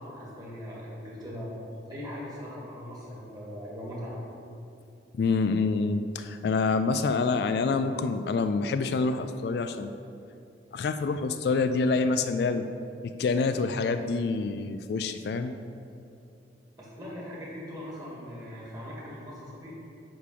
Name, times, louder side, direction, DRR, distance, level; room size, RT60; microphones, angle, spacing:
voice 1, 0.0-1.5 1.9-4.2 16.8-19.7, equal, 20° right, -6 dB, 2.1 m, -40 dB
voice 2, 5.1-9.9 10.7-12.7 13.0-15.5, left 4 dB, 60° left, 9 dB, 0.3 m, -27 dB
9.6 x 3.6 x 6.7 m, 2.6 s
head